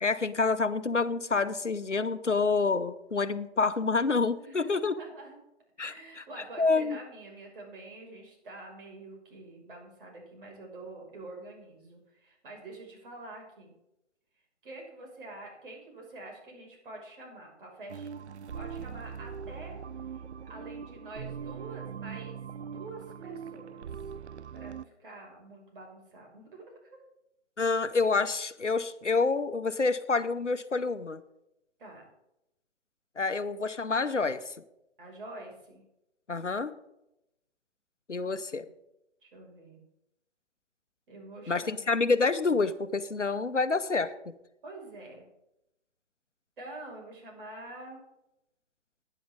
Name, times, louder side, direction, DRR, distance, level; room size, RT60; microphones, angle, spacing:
voice 1, 0.0-4.9 5.8-6.2 6.6-7.0 27.6-31.2 33.2-34.5 36.3-36.7 38.1-38.7 41.5-44.1, left 4 dB, 85° left, 13 dB, 0.9 m, -28 dB
voice 2, 4.4-5.4 5.8-13.7 14.6-19.8 20.1-20.2 20.5-22.4 22.6-23.9 24.5-27.0 31.8-32.0 35.0-35.8 38.3-38.7 39.2-39.8 41.1-41.9 43.9-44.1 44.6-45.2 46.6-48.0, right 2 dB, 50° right, 0 dB, 5.9 m, -46 dB
sound 1, 17.9-24.9, right 7 dB, 70° right, 0.5 m, -41 dB
17.0 x 10.0 x 3.7 m, 0.86 s
figure-of-eight pair, 130°, 35 cm